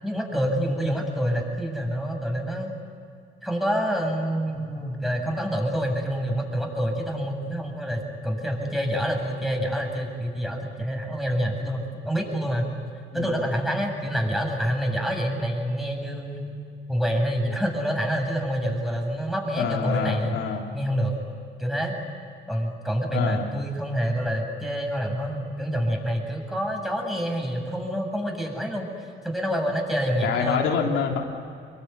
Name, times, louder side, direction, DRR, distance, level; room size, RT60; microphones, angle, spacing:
voice 1, 0.0-2.7 3.4-12.7 13.1-16.5 16.9-20.4 20.7-21.1 21.6-21.9 22.5-30.6, equal, ahead, 2 dB, 7.6 m, -27 dB
voice 2, 19.6-20.7 23.1-23.4 30.2-31.2, left 6 dB, 85° left, 0 dB, 3.3 m, -26 dB
26.0 x 23.0 x 9.5 m, 2.4 s
cardioid pair, 90°, 20 cm